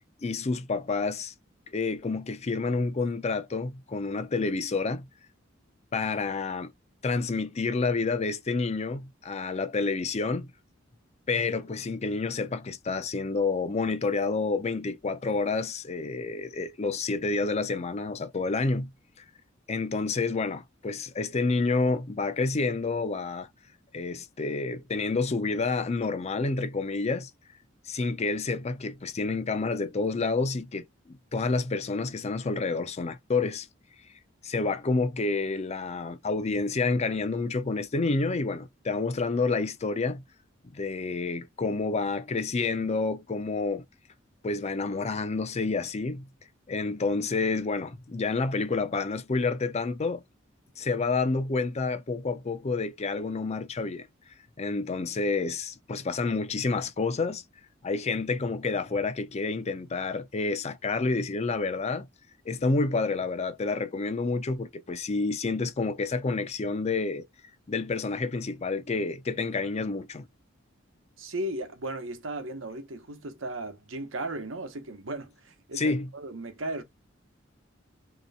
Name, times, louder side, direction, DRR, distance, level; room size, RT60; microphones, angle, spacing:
voice 1, 0.2-1.3 1.7-5.1 5.9-6.7 7.0-10.5 11.3-18.9 19.2-19.3 19.7-23.5 23.9-27.3 27.9-33.7 34.4-40.2 40.7-43.8 44.4-46.3 46.7-50.2 50.8-54.1 54.6-57.4 57.8-62.1 62.5-67.3 67.7-70.3 75.8-76.1, left 3 dB, 35° left, 0.5 m, -29 dB
voice 2, 71.2-76.8, right 1 dB, 80° right, 1.0 m, -36 dB
3.2 x 2.9 x 4.1 m
head